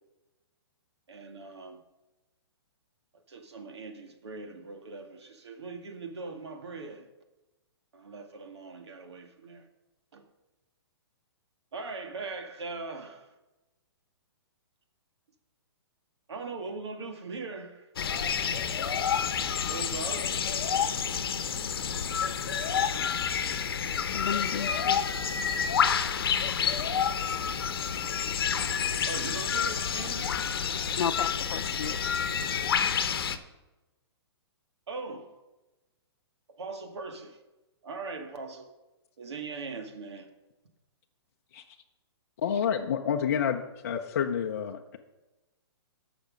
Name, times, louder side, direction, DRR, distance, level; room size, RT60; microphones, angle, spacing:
voice 1, 1.1-1.8 3.1-7.1 7.9-9.7 10.1-10.2 11.7-13.3 16.3-17.9 19.7-20.4 29.1-30.4 34.9-35.4 36.5-37.4 37.8-38.7 39.2-40.3, right 4 dB, 80° right, 1.9 m, -40 dB
sound 1, 18.0-33.4, left 7 dB, 60° left, 0.9 m, -29 dB
voice 2, 24.1-25.0 31.0-32.1, left 8 dB, 85° left, 0.6 m, -33 dB
voice 3, 42.4-45.0, left 8 dB, 35° left, 0.6 m, -29 dB
14.0 x 6.0 x 5.2 m
hypercardioid pair, 175°, 14 cm